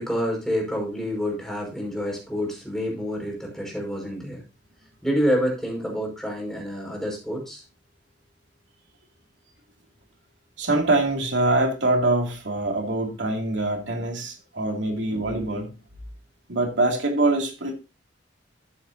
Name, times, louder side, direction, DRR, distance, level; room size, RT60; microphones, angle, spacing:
voice 1, 0.0-4.4 5.0-7.6, equal, 5° left, 5.2 m, -28 dB
voice 2, 10.6-15.7 16.5-17.7, right 2 dB, 85° right, 2.6 m, -24 dB
13.0 x 8.9 x 2.7 m
head